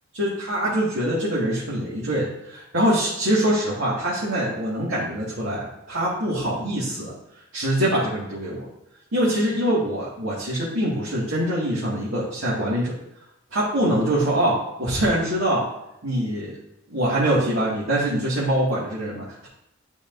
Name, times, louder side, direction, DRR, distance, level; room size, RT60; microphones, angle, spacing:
voice 1, 0.1-7.1 7.5-8.7 9.1-12.9 13.5-15.6 16.0-16.5 16.9-19.5, right 1 dB, 90° right, -8 dB, 2.1 m, -24 dB
11.5 x 5.0 x 2.7 m, 0.85 s
head